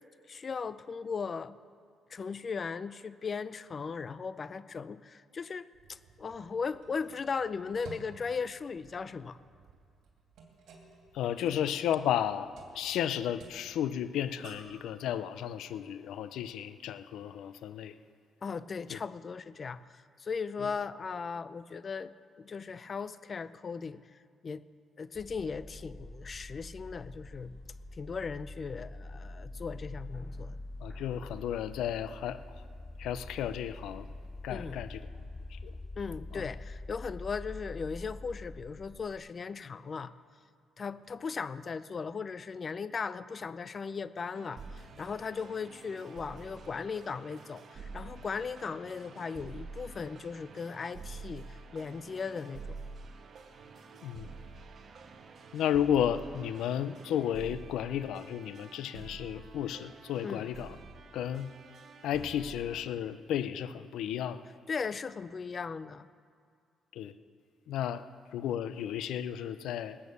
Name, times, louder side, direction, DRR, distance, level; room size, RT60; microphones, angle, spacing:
voice 1, 0.3-1.5 2.1-9.4 18.4-24.0 24.4-24.6 25.0-27.6 28.0-30.6 34.5-34.8 36.0-40.1 40.8-52.8 60.2-60.4 64.7-66.1, left 5 dB, 40° left, 15 dB, 0.6 m, -37 dB
sound 1, 5.7-14.8, right 4 dB, 75° right, 2.7 m, -55 dB
voice 2, 11.1-18.0 18.9-19.0 20.6-20.7 30.8-32.4 33.0-34.1 34.4-35.1 35.5-35.8 36.3-36.5 54.0-54.3 55.5-60.8 61.1-61.5 62.0-64.4 66.9-67.1 67.7-68.1 68.3-70.0, left 10 dB, 85° left, 13 dB, 0.6 m, -33 dB
sound 2, 25.1-39.2, left 2 dB, 25° left, 2.6 m, -45 dB
sound 3, 44.3-62.8, right 4 dB, 55° right, 1.3 m, -48 dB
19.5 x 8.7 x 7.0 m, 2.3 s
cardioid pair, 90°, 0 cm